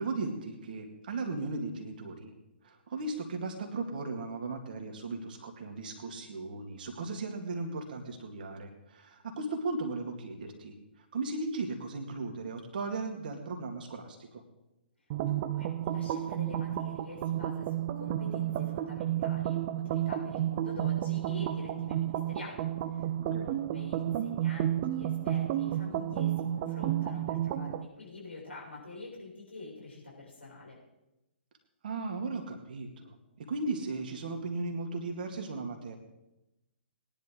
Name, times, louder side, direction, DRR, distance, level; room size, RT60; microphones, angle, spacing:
voice 1, 0.0-2.4 2.6-14.4 23.2-23.5 31.8-36.0, right 3 dB, 50° right, 3 dB, 2.2 m, -37 dB
sound 1, 15.1-27.9, right 12 dB, 35° right, 0.7 m, -31 dB
voice 2, 15.2-22.6 22.9-30.8, left 3 dB, 75° left, -4 dB, 6.6 m, -46 dB
20.0 x 10.5 x 3.8 m, 0.95 s
figure-of-eight pair, 125°, 6 cm